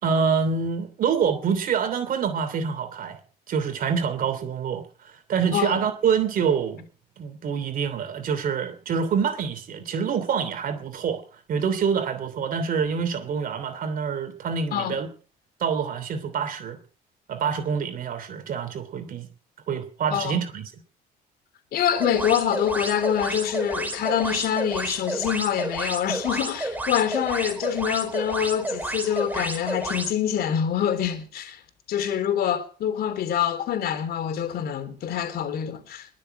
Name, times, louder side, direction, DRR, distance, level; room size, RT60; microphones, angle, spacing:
voice 1, 0.0-3.2 3.5-6.9 7.2-11.2 11.5-15.1 15.6-16.8 17.3-19.3 19.7-20.7, right 6 dB, 55° right, 3.0 m, -26 dB
voice 2, 21.7-31.6 31.9-36.1, left 9 dB, 65° left, 3.4 m, -25 dB
sound 1, 22.0-30.1, right 1 dB, 10° right, 3.8 m, -31 dB
21.5 x 7.4 x 8.1 m
cardioid pair, 110°, 17 cm